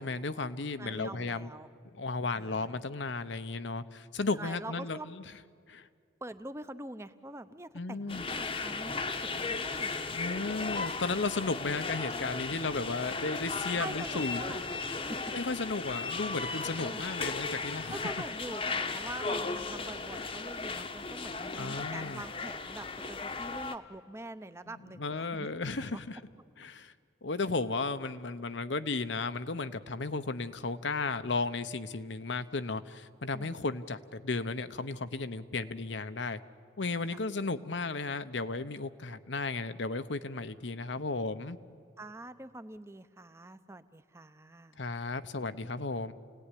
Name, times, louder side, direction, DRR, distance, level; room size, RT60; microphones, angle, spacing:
voice 1, 0.0-1.5 1.9-5.2 5.7-5.9 7.7-8.3 10.1-14.4 15.3-18.0 21.5-22.2 24.9-26.2 26.6-26.9 27.2-36.4 36.8-41.6 44.8-46.1, left 3 dB, 75° left, 11 dB, 0.9 m, -34 dB
voice 2, 0.8-1.7 2.3-2.8 4.3-5.1 6.2-10.2 13.7-14.6 15.0-15.2 16.8-17.0 17.9-25.5 25.8-26.0 33.3-33.6 37.1-37.2 42.0-44.8, right 1 dB, 15° right, 12 dB, 0.8 m, -45 dB
sound 1, 8.1-23.7, left 4 dB, 30° left, 1.0 m, -36 dB
29.0 x 18.0 x 10.0 m, 2.1 s
head